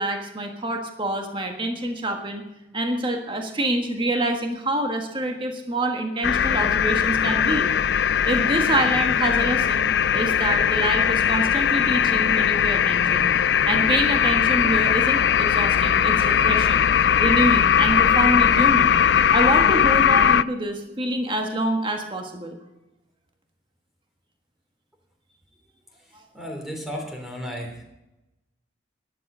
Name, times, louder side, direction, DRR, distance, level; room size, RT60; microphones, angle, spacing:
voice 1, 0.0-2.4 2.7-7.7 8.2-13.3 13.7-16.9 17.2-19.0 19.3-22.6 26.1-26.2, right 1 dB, 25° right, 4 dB, 1.5 m, -26 dB
sound 1, 6.2-20.4, left 8 dB, 65° left, 0.4 m, -19 dB
voice 2, 26.3-27.8, equal, ahead, 1 dB, 3.3 m, -34 dB
12.0 x 12.0 x 6.7 m, 0.94 s
head